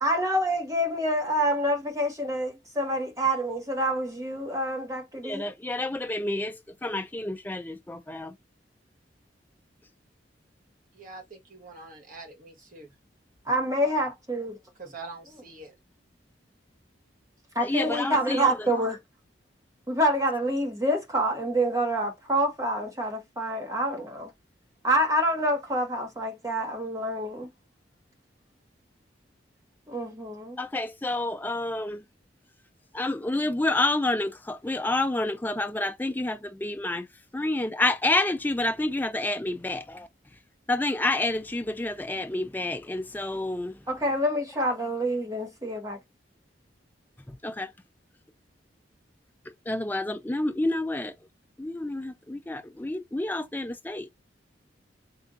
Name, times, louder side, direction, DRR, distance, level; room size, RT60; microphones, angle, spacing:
voice 1, 0.0-5.4 13.5-14.6 17.5-19.0 19.9-24.3 24.8-27.5 29.9-30.6 43.9-46.0, right 1 dB, 20° right, 1.2 m, -27 dB
voice 2, 5.2-8.3 17.6-18.7 30.6-32.0 32.9-37.1 37.3-40.1 40.7-43.8 47.3-47.7 49.7-51.1 51.6-54.1, left 2 dB, 10° left, 0.4 m, -29 dB
voice 3, 10.9-12.9 14.8-15.7, right 3 dB, 50° right, 1.6 m, -44 dB
3.4 x 2.7 x 3.7 m
head